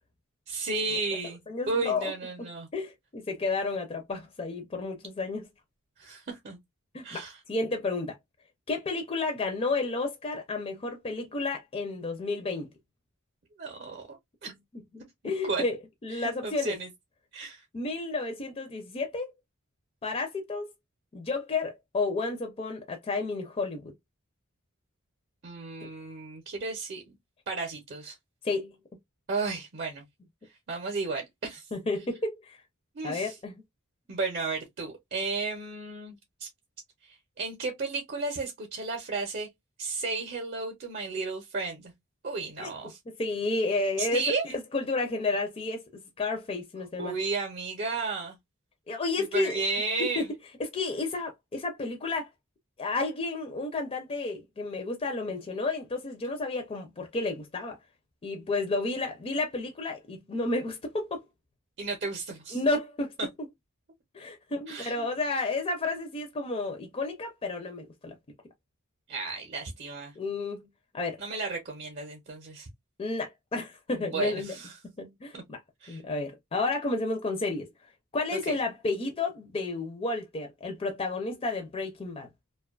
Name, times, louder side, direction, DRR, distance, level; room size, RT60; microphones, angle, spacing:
voice 1, 0.5-1.4 1.7-2.7 6.0-6.6 7.0-7.4 13.6-14.5 15.4-15.6 16.1-16.9 17.3-17.6 25.4-27.2 27.5-28.2 29.3-30.0 30.7-31.7 32.9-33.4 34.1-36.5 37.0-39.5 39.8-41.9 42.2-43.0 44.0-44.4 47.0-48.4 49.2-50.3 61.8-62.6 63.2-63.3 64.7-65.1 69.1-70.1 71.2-72.7 74.0-74.7 75.3-75.4 75.8-76.0 78.3-78.6, right 3 dB, 45° right, 0.6 m, -33 dB
voice 2, 1.5-2.1 2.7-5.5 6.9-8.2 8.7-12.7 14.9-15.8 16.0-16.8 17.7-19.3 20.0-20.7 21.1-23.9 25.8-25.9 28.4-28.7 31.7-32.6 33.0-33.5 42.6-42.7 43.1-47.2 48.9-49.6 50.0-50.2 50.6-52.3 52.8-57.8 58.2-61.2 62.5-63.1 64.1-68.2 70.2-70.7 70.9-71.2 73.0-74.5 75.0-75.6 75.9-77.7 78.1-82.3, left 3 dB, 30° left, 0.4 m, -31 dB
2.5 x 2.2 x 2.2 m
head